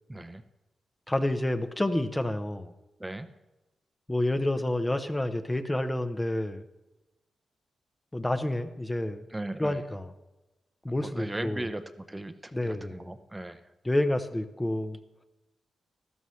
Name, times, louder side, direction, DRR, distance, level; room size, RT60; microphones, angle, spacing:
voice 1, 0.1-0.4 3.0-3.3 9.3-9.8 10.9-13.6, right 1 dB, 15° right, 9 dB, 0.8 m, -37 dB
voice 2, 1.1-2.7 4.1-6.6 8.1-9.2 9.6-10.1 10.8-11.6 12.5-13.0 13.8-15.0, left 1 dB, 15° left, 8 dB, 0.8 m, -29 dB
13.0 x 12.5 x 3.2 m, 1.0 s
cardioid pair, 60°, 0 cm